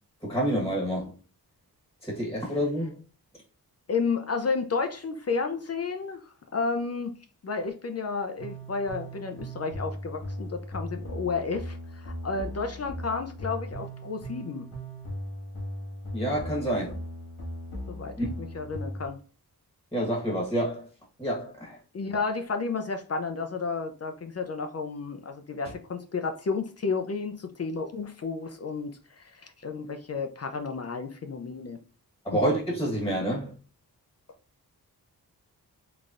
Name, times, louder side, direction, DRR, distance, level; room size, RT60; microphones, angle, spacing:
voice 1, 0.2-1.1 2.0-2.9 16.1-17.0 18.2-18.3 19.9-20.9 21.2-21.8 32.2-33.5, equal, 10° left, 1.2 m, -28 dB
voice 2, 3.9-6.2 6.5-7.1 7.4-14.6 17.9-19.2 21.9-31.8, left 4 dB, 40° left, 0.5 m, -32 dB
sound 1, 8.4-19.0, equal, 75° left, 1.6 m, -38 dB
3.9 x 3.3 x 2.4 m
wide cardioid pair, 105°, 38 cm